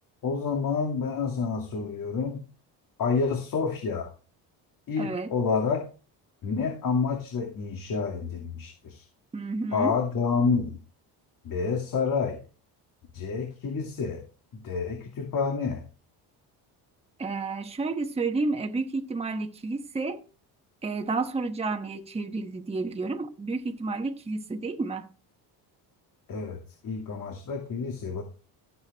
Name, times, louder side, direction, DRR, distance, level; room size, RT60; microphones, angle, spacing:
voice 1, 0.2-2.4 3.0-4.1 4.9-5.8 6.4-9.0 9.7-10.8 11.4-12.4 13.1-14.2 14.5-15.8 26.3-26.6 26.8-28.2, left 5 dB, 50° left, 2.5 m, -28 dB
voice 2, 5.0-5.3 9.3-9.9 17.2-20.2 20.8-25.1, right 3 dB, 15° right, 1.1 m, -31 dB
15.0 x 7.8 x 3.4 m
cardioid pair, 140°, 41 cm